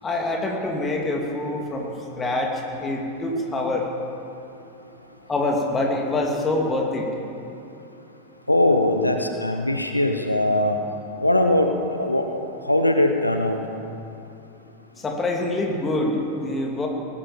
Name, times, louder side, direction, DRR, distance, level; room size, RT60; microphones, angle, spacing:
voice 1, 0.0-3.9 5.3-7.1 15.0-16.9, left 2 dB, 20° left, 1 dB, 2.7 m, -25 dB
voice 2, 8.5-10.8 11.2-11.7 12.0-13.6, left 1 dB, 85° left, 5 dB, 0.9 m, -21 dB
18.5 x 10.5 x 7.3 m, 2.8 s
figure-of-eight pair, 90°, 0 cm